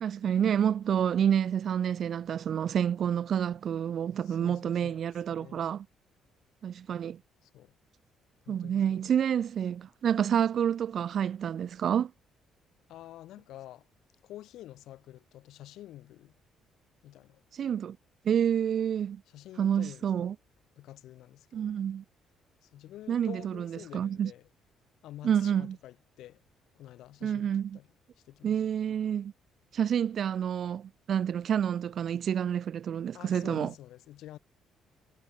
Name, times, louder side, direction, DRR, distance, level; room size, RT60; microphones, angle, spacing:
voice 1, 0.0-5.9 6.6-7.2 8.5-12.1 17.5-18.0 18.2-19.2 19.6-20.4 21.5-22.0 23.1-24.3 25.2-25.8 27.2-27.8 28.4-29.3 29.7-33.7, right 9 dB, 45° right, 0.7 m, -28 dB
voice 2, 4.3-5.7 7.4-7.7 8.5-9.1 12.9-13.9 14.2-16.3 17.0-17.4 19.3-20.3 20.8-21.7 22.6-24.4 25.0-26.4 26.7-27.9 28.3-28.6 33.1-34.4, left 14 dB, 70° left, 6.1 m, -48 dB
cardioid pair, 165°, 0 cm